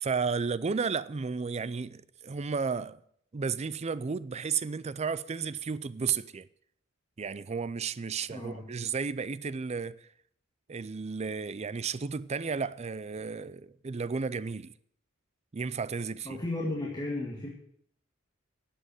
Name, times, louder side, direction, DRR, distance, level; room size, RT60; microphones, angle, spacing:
voice 1, 0.0-3.0 3.3-6.5 7.2-10.1 10.7-14.7 15.5-16.4, right 5 dB, 30° right, 0.4 m, -33 dB
voice 2, 8.3-8.8 16.2-17.5, left 2 dB, 20° left, 2.1 m, -34 dB
11.5 x 7.7 x 9.2 m
head